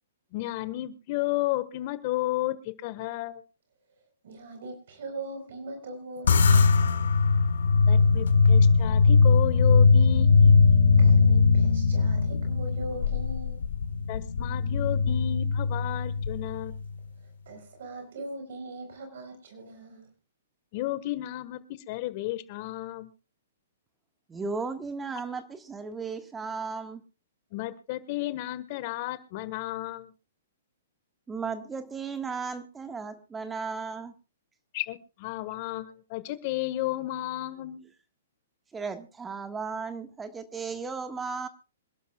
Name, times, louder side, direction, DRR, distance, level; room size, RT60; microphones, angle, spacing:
voice 1, 0.3-3.4 7.9-10.6 14.1-16.7 20.7-21.6 21.9-23.1 27.5-30.1 34.7-37.9, left 15 dB, 45° left, 14 dB, 1.4 m, -33 dB
voice 2, 4.2-7.1 11.0-13.6 17.5-20.1, right 2 dB, 65° right, 5 dB, 4.2 m, -41 dB
sound 1, 6.3-16.9, left 4 dB, 75° left, 1.5 m, -20 dB
voice 3, 24.3-27.0 31.3-34.1 38.7-41.5, right 5 dB, 15° right, 8 dB, 1.5 m, -35 dB
26.5 x 12.0 x 2.3 m, 0.32 s
hypercardioid pair, 125°, 0 cm